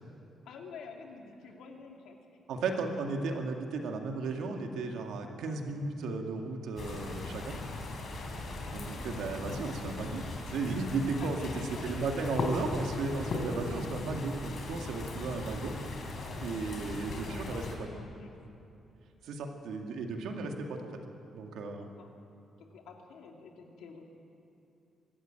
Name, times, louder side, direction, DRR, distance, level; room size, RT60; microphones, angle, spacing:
voice 1, 0.4-2.2 8.3-8.6 11.2-12.0 16.2-18.4 21.7-22.1 22.6-24.0, left 5 dB, 85° left, 1 dB, 2.7 m, -50 dB
voice 2, 2.5-7.6 8.7-11.4 11.8-15.7 16.4-17.9 19.2-21.0 21.3-21.9, right 3 dB, 90° right, 3 dB, 2.1 m, -35 dB
sound 1, 6.8-17.8, left 2 dB, 45° left, 3.8 m, -38 dB
24.0 x 13.5 x 8.9 m, 2.7 s
cardioid pair, 160°, 0 cm